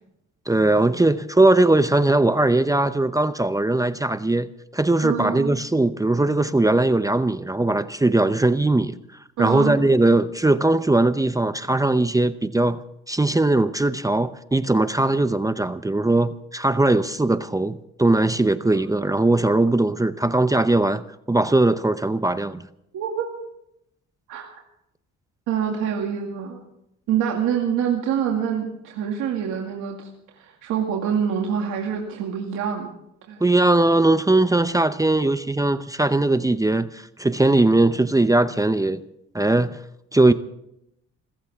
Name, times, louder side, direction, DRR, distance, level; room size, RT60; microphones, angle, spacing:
voice 1, 0.5-9.0 9.4-12.8 13.1-21.0 21.3-22.6 33.4-39.0 39.3-39.8 40.1-40.3, right 2 dB, 10° right, 0.7 m, -20 dB
voice 2, 5.0-5.5 9.4-9.8 22.9-23.3 24.3-24.5 25.5-26.6 27.1-30.0 30.3-32.9 33.3-33.4, right 8 dB, 90° right, 2.3 m, -25 dB
26.5 x 15.0 x 3.6 m
cardioid pair, 90°, 30 cm